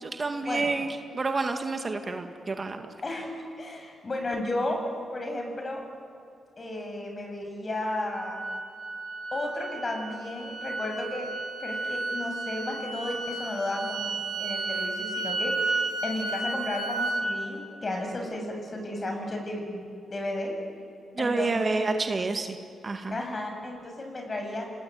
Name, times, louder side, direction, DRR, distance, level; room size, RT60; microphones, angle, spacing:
voice 1, 0.0-2.8 21.2-22.6 22.8-23.2, right 3 dB, 40° right, 6 dB, 2.1 m, -29 dB
voice 2, 3.0-4.8 5.1-5.8 6.6-8.4 9.3-11.3 11.6-20.5 21.2-22.0 23.1-24.7, left 1 dB, 40° left, 3 dB, 7.6 m, -33 dB
sound 1, 8.1-17.2, right 3 dB, 70° right, 3.8 m, -33 dB
28.0 x 19.0 x 9.5 m, 2.5 s
supercardioid pair, 60°, 0 cm